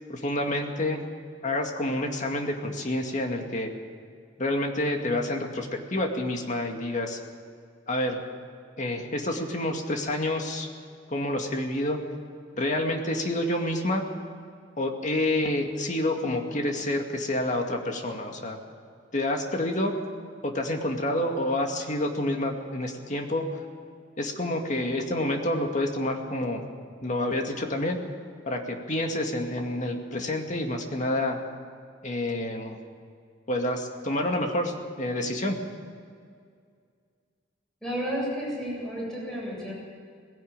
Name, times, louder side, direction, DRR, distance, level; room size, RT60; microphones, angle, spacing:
voice 1, 0.1-1.1 1.4-3.7 4.4-7.2 7.9-8.2 8.8-10.7 11.1-12.0 12.5-14.1 14.8-18.6 19.1-19.9 20.4-23.4 24.2-26.6 27.0-28.0 28.5-31.4 32.0-32.8 33.5-35.6, left 1 dB, 40° left, 3 dB, 2.2 m, -28 dB
voice 2, 37.8-39.7, equal, 5° left, -5 dB, 7.8 m, -32 dB
19.5 x 16.5 x 9.0 m, 2.1 s
head